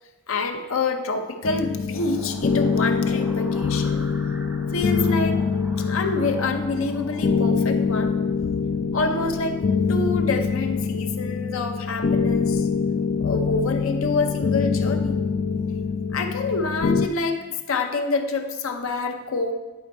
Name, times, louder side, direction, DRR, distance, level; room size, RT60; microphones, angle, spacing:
voice 1, 0.3-4.1 4.7-5.4 5.8-8.1 8.9-9.6 9.9-12.7 13.2-15.2 16.1-19.5, left 3 dB, 80° left, 5 dB, 0.7 m, -27 dB
sound 1, 1.4-17.1, left 5 dB, 50° left, 0.4 m, -24 dB
sound 2, 1.9-7.5, right 1 dB, 10° right, 0.5 m, -45 dB
10.5 x 4.3 x 4.2 m, 1.2 s
head